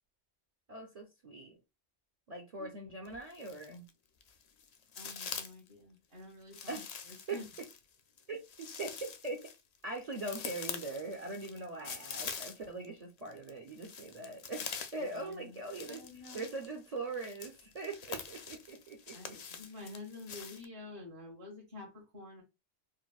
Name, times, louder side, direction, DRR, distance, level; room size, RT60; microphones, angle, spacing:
voice 1, 0.7-1.6 2.3-3.8 6.7-6.9 7.3-7.4 8.3-9.4 9.8-14.6 14.9-16.0 16.3-19.4, right 2 dB, 40° right, 0.7 m, -41 dB
sound 1, 3.0-3.9 4.2-5.7 6.5-12.9 13.2-20.6, left 6 dB, 55° left, 0.4 m, -45 dB
voice 2, 5.0-7.4 15.0-16.5 19.1-22.4, left 3 dB, 70° right, 1.8 m, -49 dB
4.6 x 2.1 x 2.3 m
omnidirectional pair, 1.1 m